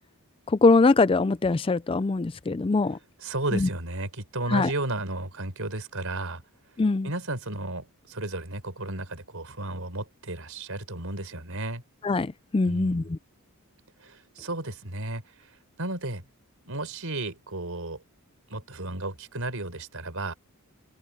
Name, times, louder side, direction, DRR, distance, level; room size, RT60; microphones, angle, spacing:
voice 1, 0.5-3.0 3.5-3.7 4.5-4.7 6.8-7.1 12.0-13.2, left 3 dB, 25° left, 0.4 m, -22 dB
voice 2, 3.2-6.4 7.0-11.8 12.6-13.1 14.0-16.2 16.7-18.0 18.5-20.3, right 2 dB, 65° right, 5.2 m, -33 dB
head